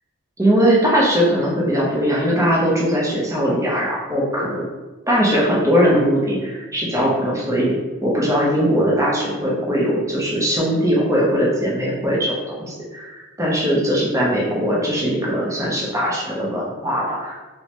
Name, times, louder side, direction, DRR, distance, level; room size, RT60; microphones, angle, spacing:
voice 1, 0.4-4.7 5.1-7.8 8.0-17.3, equal, 15° right, -5 dB, 0.6 m, -20 dB
3.0 x 2.1 x 2.9 m, 1.2 s
head